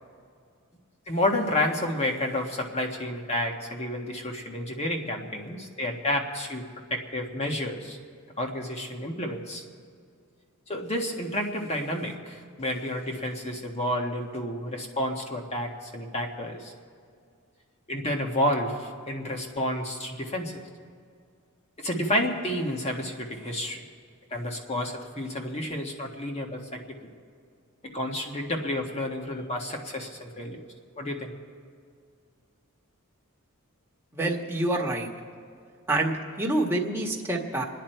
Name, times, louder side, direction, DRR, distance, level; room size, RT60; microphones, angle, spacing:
voice 1, 1.1-6.6 6.9-8.0 8.4-9.6 10.7-16.7 17.9-20.5 21.8-23.8 24.3-27.0 27.8-30.6 31.0-31.3, left 1 dB, 30° left, 2 dB, 1.6 m, -30 dB
voice 2, 34.1-35.1 35.9-37.6, right 2 dB, 10° right, -1 dB, 1.6 m, -27 dB
28.0 x 10.0 x 4.5 m, 2.2 s
head